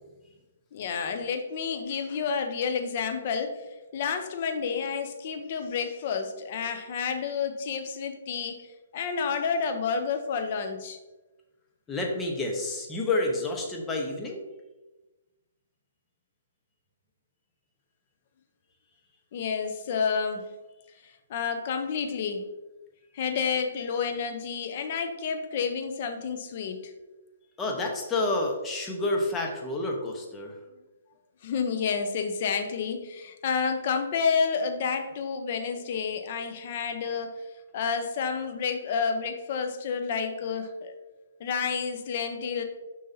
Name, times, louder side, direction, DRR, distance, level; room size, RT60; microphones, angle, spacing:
voice 1, 0.7-3.7 3.9-8.7 8.9-11.0 19.3-20.5 21.0-22.5 23.1-26.9 31.4-37.4 37.7-40.9 41.4-42.6, left 6 dB, 45° left, 6 dB, 0.8 m, -30 dB
voice 2, 11.9-14.4 27.6-30.6, left 2 dB, 15° left, 1 dB, 1.1 m, -29 dB
6.6 x 5.5 x 2.8 m, 1.1 s
hypercardioid pair, 150°, 0 cm